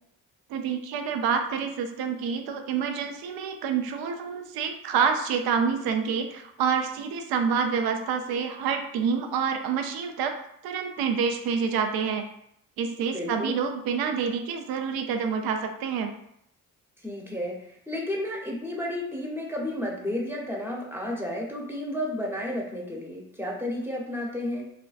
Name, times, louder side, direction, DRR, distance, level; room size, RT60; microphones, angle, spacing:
voice 1, 0.5-10.3 10.6-12.2 12.8-16.1, right 6 dB, 65° right, 5 dB, 0.5 m, -27 dB
voice 2, 13.1-13.6 17.0-24.6, left 1 dB, 5° right, -2 dB, 0.8 m, -32 dB
2.5 x 2.1 x 2.4 m, 0.74 s
hypercardioid pair, 40°, 39 cm